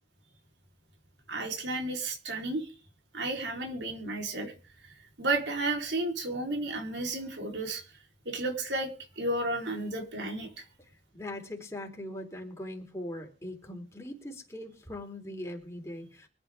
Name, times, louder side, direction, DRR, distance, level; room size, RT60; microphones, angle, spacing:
voice 1, 1.3-2.7 3.1-4.5 5.2-7.8 8.3-8.9 9.2-10.5, right 2 dB, 85° right, 1 dB, 4.1 m, -32 dB
voice 2, 10.8-16.3, left 1 dB, 15° left, 1 dB, 3.9 m, -41 dB
25.0 x 9.0 x 3.7 m, 0.34 s
head